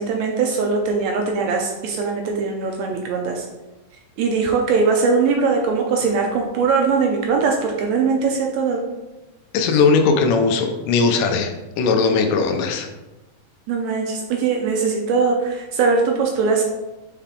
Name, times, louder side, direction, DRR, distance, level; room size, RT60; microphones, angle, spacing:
voice 1, 0.0-3.5 4.2-8.8 13.7-16.6, right 4 dB, 75° right, 1 dB, 1.7 m, -21 dB
voice 2, 9.5-12.9, left 4 dB, 85° left, 5 dB, 2.2 m, -19 dB
5.7 x 4.9 x 3.6 m, 1.1 s
omnidirectional pair, 3.7 m